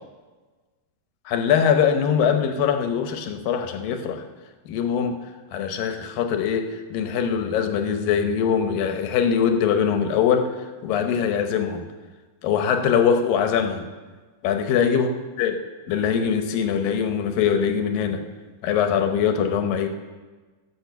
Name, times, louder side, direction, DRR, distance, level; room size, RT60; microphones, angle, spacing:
voice 1, 1.3-4.2 4.7-5.2 5.5-10.5 10.8-11.8 12.4-13.9 14.4-15.1 15.4-15.6 15.9-18.2 18.6-19.9, left 7 dB, 90° left, 6 dB, 2.7 m, -22 dB
15.5 x 6.6 x 6.8 m, 1.3 s
omnidirectional pair, 3.9 m